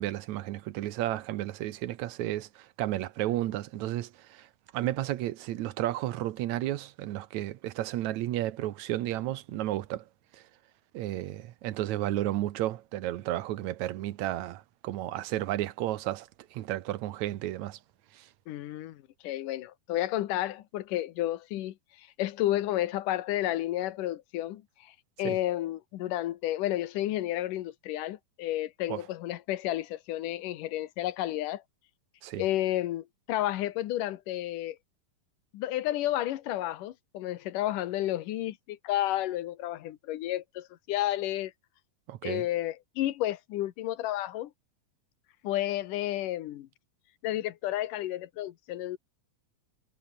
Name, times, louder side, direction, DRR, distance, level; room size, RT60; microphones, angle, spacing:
voice 1, 0.0-4.5 4.7-10.0 10.3-10.4 10.9-17.8 18.1-18.3 25.2-25.4 28.9-29.0 32.2-32.4 42.1-42.5, right 14 dB, 70° right, 2.1 m, -32 dB
voice 2, 18.5-24.6 25.2-31.6 32.4-34.8 35.5-41.5 42.2-44.5 45.4-46.7 47.2-49.0, left 14 dB, 75° left, 2.6 m, -31 dB
omnidirectional pair, 3.9 m